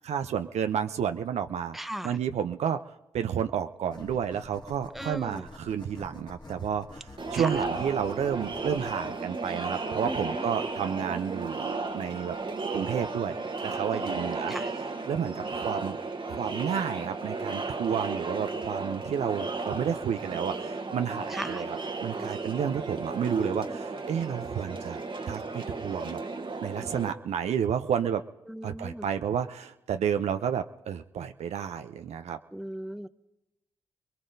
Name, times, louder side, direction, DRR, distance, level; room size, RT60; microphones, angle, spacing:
voice 1, 0.0-1.8 2.0-2.8 3.1-12.4 12.7-13.4 13.6-14.6 15.1-16.0 16.3-21.8 22.0-25.0 25.3-26.2 26.6-28.2 28.6-32.4, right 8 dB, 75° right, 8 dB, 0.5 m, -31 dB
voice 2, 1.7-2.2 4.9-5.4 7.3-7.5 10.0-10.4 13.9-14.2 14.5-14.7 21.3-21.6 23.2-23.7 28.5-29.1 32.5-33.1, right 1 dB, ahead, 12 dB, 0.6 m, -37 dB
sound 1, 3.9-12.4, left 2 dB, 40° left, 2.0 m, -49 dB
Crowd, 7.2-27.1, right 3 dB, 45° right, 1.1 m, -34 dB
26.0 x 20.5 x 2.7 m, 0.97 s
supercardioid pair, 45°, 11 cm